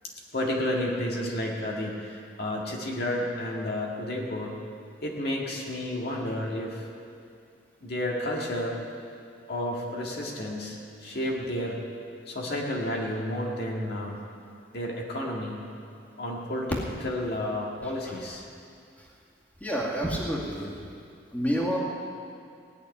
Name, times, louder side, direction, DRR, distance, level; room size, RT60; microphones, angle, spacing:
voice 1, 0.3-4.6 5.0-6.9 7.8-8.8 9.5-11.8 12.3-14.2 14.7-15.7 16.2-16.8 17.0-18.4, left 1 dB, 60° left, -2 dB, 2.0 m, -31 dB
voice 2, 19.6-20.7 21.3-21.8, equal, 10° left, -5 dB, 2.2 m, -28 dB
17.5 x 6.8 x 9.7 m, 2.4 s
head